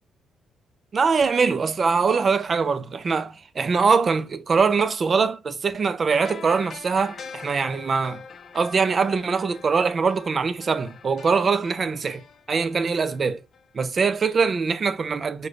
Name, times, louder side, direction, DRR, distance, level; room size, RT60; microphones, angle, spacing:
voice 1, 0.9-8.2 8.5-12.2 12.5-13.4 13.7-15.5, right 5 dB, 40° right, 0.4 m, -23 dB
sound 1, 6.1-13.7 14.0-14.1, left 5 dB, 50° left, 0.5 m, -44 dB
4.7 x 2.2 x 2.4 m
cardioid pair, 90°, 0 cm